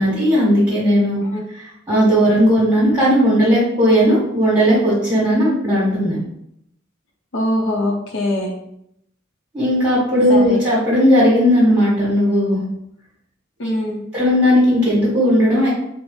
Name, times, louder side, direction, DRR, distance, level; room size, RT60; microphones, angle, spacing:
voice 1, 0.0-1.2 1.6-6.2 9.5-12.6 14.1-15.7, equal, 15° right, -9 dB, 1.3 m, -16 dB
voice 2, 7.3-8.5 10.3-10.6 13.6-14.0, left 1 dB, 65° left, 0 dB, 0.6 m, -22 dB
4.2 x 2.0 x 3.1 m, 0.76 s
head